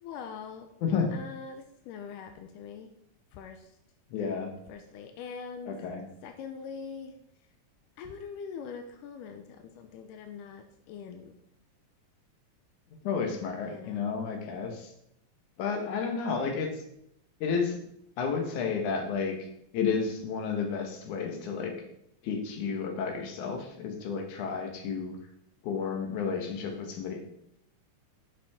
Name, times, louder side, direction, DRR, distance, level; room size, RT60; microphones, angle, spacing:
voice 1, 0.0-0.7 1.1-2.9 3.3-3.7 4.7-5.7 6.2-7.1 8.0-11.3 13.6-14.1, left 6 dB, 90° left, 6 dB, 2.2 m, -43 dB
voice 2, 4.1-4.5 5.7-6.0 13.0-14.9 15.6-16.7 17.4-17.8 18.2-19.4 19.7-21.7 22.2-25.2 25.6-27.2, left 5 dB, 70° left, 3 dB, 2.7 m, -31 dB
10.0 x 6.1 x 3.6 m, 0.76 s
omnidirectional pair, 3.7 m